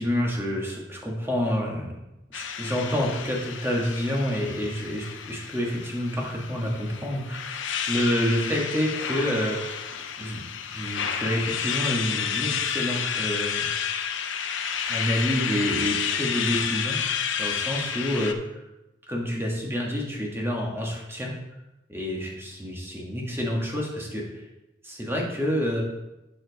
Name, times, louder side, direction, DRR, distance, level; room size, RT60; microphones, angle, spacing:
voice 1, 0.0-1.9 2.3-7.5 7.9-9.8 10.2-10.4 10.7-13.7 14.9-18.5 19.1-21.3 21.9-24.4 24.8-25.8, equal, 15° right, -1 dB, 1.6 m, -28 dB
sound 1, 2.3-18.3, left 7 dB, 80° left, 0.6 m, -30 dB
7.8 x 7.0 x 4.0 m, 0.97 s
head